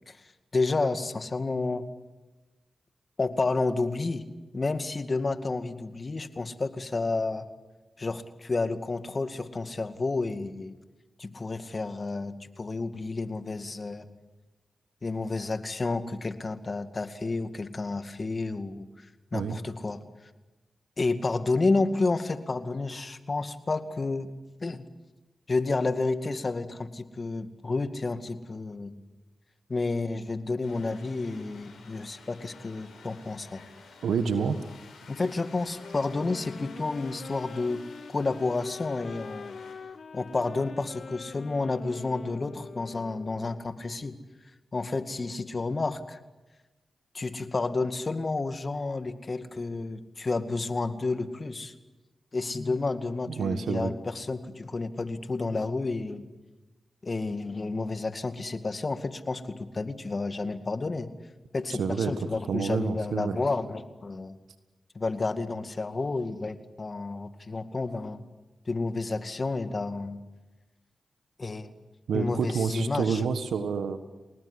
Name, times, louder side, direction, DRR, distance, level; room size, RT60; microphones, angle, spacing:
voice 1, 0.5-1.8 3.2-4.2 4.5-7.5 8.0-10.7 11.2-14.1 15.0-18.9 19.3-20.0 21.0-24.3 24.6-24.8 25.5-28.9 29.7-33.6 35.1-37.8 38.1-39.6 40.1-44.2 44.7-46.2 47.1-51.7 52.3-56.3 57.0-61.1 61.5-64.4 64.9-68.2 68.7-70.2 71.4-71.7 72.1-73.2, left 3 dB, 45° left, 9 dB, 2.2 m, -30 dB
sound 1, 30.6-39.7, left 4 dB, 85° left, 7.3 m, -52 dB
voice 2, 34.0-34.6 53.4-53.9 61.8-62.1 62.5-63.4 72.1-74.0, right 6 dB, 85° right, 10 dB, 1.4 m, -28 dB
sound 2, 35.8-43.8, left 5 dB, 65° left, 1.1 m, -44 dB
30.0 x 19.0 x 9.9 m, 1.1 s
supercardioid pair, 40°, 0 cm